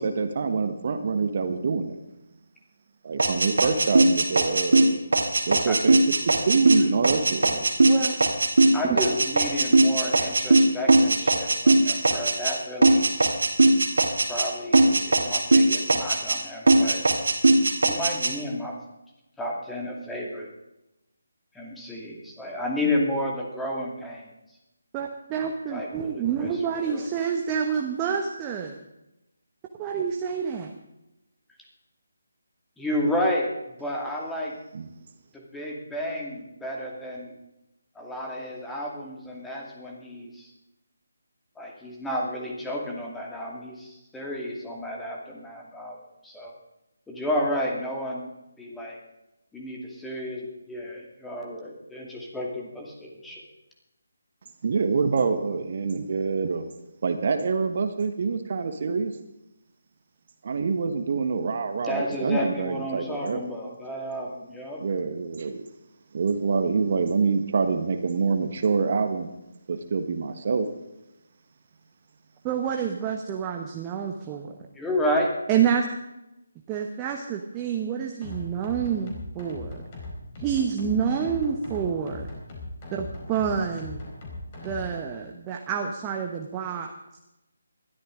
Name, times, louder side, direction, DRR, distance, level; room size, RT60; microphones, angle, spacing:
voice 1, 0.0-2.0 3.0-5.0 5.5-6.0 6.2-7.7 34.7-34.9 54.6-56.7 57.0-59.1 60.4-63.4 64.8-65.6 66.1-69.3 69.7-70.7, right 5 dB, 45° right, 8 dB, 1.4 m, -26 dB
sound 1, 3.2-12.6 12.8-14.5 14.7-16.4 16.7-18.3, right 2 dB, 60° right, 2.7 m, -19 dB
voice 2, 7.8-8.2 24.9-28.8 29.8-30.7 72.4-74.6 75.5-75.9 76.7-79.8 80.4-82.3 82.9-84.0 84.6-86.9, right 7 dB, 15° right, 2 dB, 1.1 m, -28 dB
voice 3, 8.7-13.1 14.3-17.1 17.8-18.8 19.4-20.5 21.5-24.3 25.7-26.5 26.8-27.1 32.8-34.6 35.3-37.3 37.9-40.5 41.6-46.5 47.1-48.3 48.6-49.0 49.5-53.5 61.8-64.8 74.7-75.3, left 1 dB, 5° left, -1 dB, 2.3 m, -31 dB
sound 2, 78.2-85.0, left 2 dB, 30° left, 4.5 m, -39 dB
20.5 x 13.0 x 3.8 m, 0.92 s
figure-of-eight pair, 150°, 0 cm